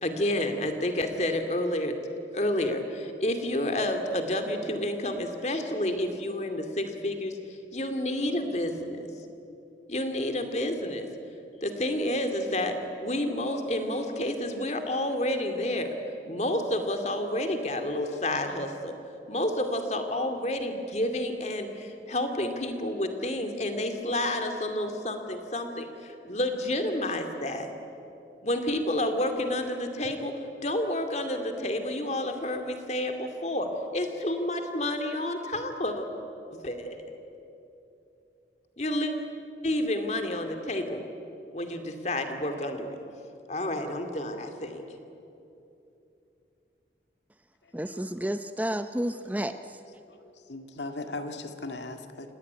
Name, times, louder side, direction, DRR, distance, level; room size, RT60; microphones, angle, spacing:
voice 1, 0.0-1.9 2.3-7.4 7.7-9.1 9.9-11.1 11.6-15.9 16.3-18.9 19.3-27.7 28.4-30.3 30.6-33.7 33.9-36.1 36.5-37.0 38.8-39.1 39.6-41.0 41.5-43.0 43.5-44.8, left 1 dB, 40° left, 2.4 m, -30 dB
voice 2, 47.7-49.8, right 1 dB, 10° right, 0.6 m, -31 dB
voice 3, 50.1-52.3, left 2 dB, 80° left, 1.9 m, -38 dB
28.0 x 18.0 x 9.5 m
head